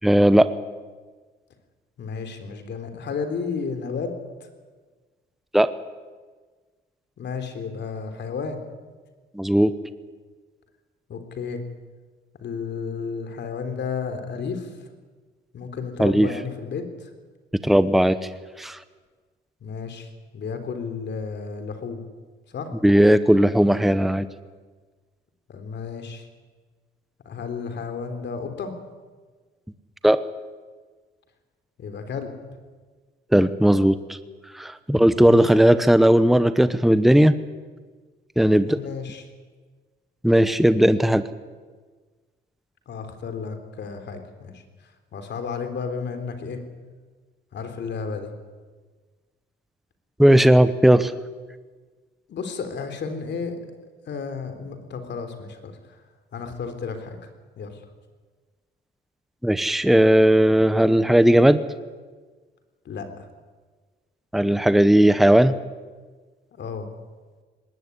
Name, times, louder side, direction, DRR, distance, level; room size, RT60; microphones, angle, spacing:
voice 1, 0.0-0.5 5.5-5.7 9.4-9.7 16.0-16.3 17.6-18.2 18.6-18.8 22.8-24.3 30.0-30.2 33.3-34.2 34.6-37.4 38.4-38.8 40.2-41.2 50.2-51.1 59.4-61.6 64.3-65.6, right 1 dB, ahead, 12 dB, 1.0 m, -17 dB
voice 2, 2.0-4.1 7.2-8.6 11.1-11.6 12.4-14.8 15.5-17.1 19.6-22.0 22.5-22.7 25.5-26.3 27.3-28.7 31.8-32.3 35.2-35.5 38.6-39.3 42.9-44.6 45.1-46.6 47.5-48.3 52.3-53.6 54.1-56.0 56.3-57.2 57.6-57.9 62.9-63.3 66.5-66.9, left 5 dB, 60° left, 7 dB, 3.6 m, -32 dB
20.0 x 17.5 x 9.8 m, 1.4 s
cardioid pair, 90°, 20 cm